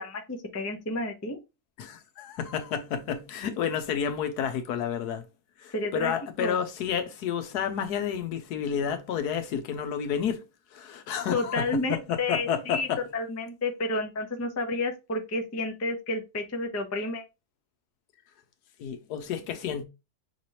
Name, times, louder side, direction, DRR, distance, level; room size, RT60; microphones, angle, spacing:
voice 1, 0.0-1.4 5.7-6.1 6.4-6.5 11.3-12.9 13.1-17.2, left 2 dB, 25° left, 0.3 m, -30 dB
voice 2, 1.8-5.2 5.6-10.4 10.7-13.0 18.8-19.8, left 8 dB, 90° left, 1.3 m, -30 dB
5.9 x 3.2 x 2.8 m
omnidirectional pair, 1.6 m